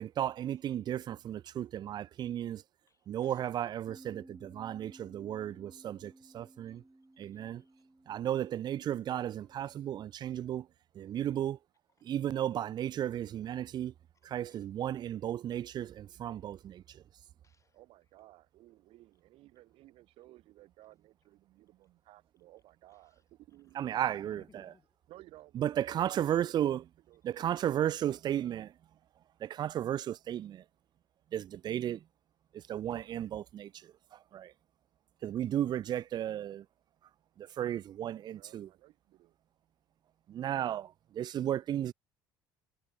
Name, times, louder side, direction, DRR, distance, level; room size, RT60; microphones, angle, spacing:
voice 1, 0.0-2.6 3.1-6.8 7.2-7.6 8.1-10.7 11.0-11.6 12.0-13.9 14.3-17.0 23.8-24.4 25.6-26.8 27.2-28.7 29.4-30.6 31.3-32.0 32.5-33.7 34.1-34.5 35.2-36.6 37.4-38.7 40.3-41.9, right 11 dB, 45° right, 0.4 m, -34 dB
voice 2, 2.8-3.6 4.1-4.2 5.6-6.7 7.2-7.9 8.8-9.9 11.1-11.6 11.9-12.2 13.4-13.7 14.1-14.7 16.4-18.3 18.7-18.8 19.7-19.8 22.9-23.2 23.6-25.1, left 5 dB, 30° left, 5.4 m, -70 dB
Bass guitar, 3.9-10.1, right 2 dB, 10° right, 6.4 m, -58 dB
voice 3, 17.7-23.9 25.1-27.9 38.4-39.4, right 16 dB, 65° right, 3.9 m, -58 dB
hypercardioid pair, 60°, 10 cm